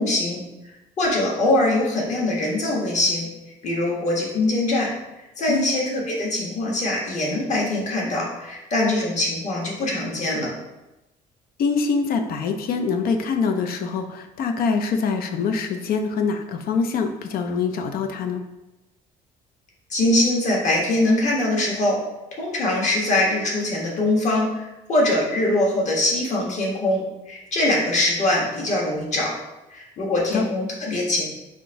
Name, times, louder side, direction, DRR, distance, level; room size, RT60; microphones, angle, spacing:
voice 1, 0.0-3.3 3.6-4.9 5.4-10.5 19.9-22.0 22.4-29.3 29.7-31.2, left 1 dB, 45° left, -3 dB, 1.3 m, -23 dB
voice 2, 11.6-18.4 30.3-30.4, left 5 dB, 60° left, 6 dB, 0.5 m, -24 dB
3.6 x 2.6 x 4.5 m, 0.99 s
cardioid pair, 110°, 17 cm